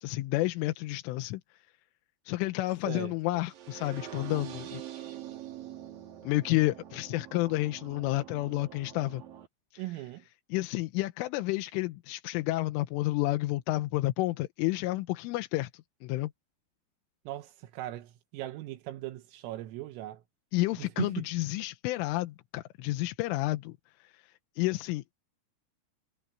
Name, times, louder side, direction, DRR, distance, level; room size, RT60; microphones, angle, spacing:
voice 1, 0.0-1.4 2.3-4.8 6.2-9.2 9.7-9.8 10.5-15.7 16.0-16.3 20.5-23.8 24.0-24.3 24.6-25.1, left 18 dB, 80° left, 3.3 m, -30 dB
sound 1, 3.5-9.5, right 12 dB, 55° right, 3.1 m, -45 dB
voice 2, 9.8-10.3 17.3-20.2 20.8-21.3, right 15 dB, 85° right, 3.8 m, -38 dB
omnidirectional pair, 5.9 m